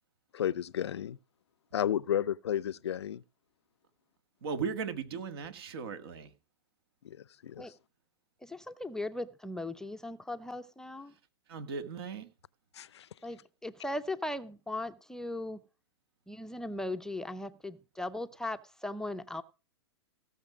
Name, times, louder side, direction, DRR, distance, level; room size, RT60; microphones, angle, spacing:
voice 1, 0.3-1.2 1.7-3.2 7.0-7.2 7.4-7.7 12.7-13.1, left 10 dB, 75° left, 0.5 m, -32 dB
voice 2, 4.4-6.3 11.5-12.3, right 6 dB, 60° right, 1.7 m, -37 dB
voice 3, 8.4-11.1 13.2-15.6 16.3-19.4, left 1 dB, 5° left, 0.5 m, -38 dB
17.0 x 6.4 x 5.0 m
hypercardioid pair, 115°, 14 cm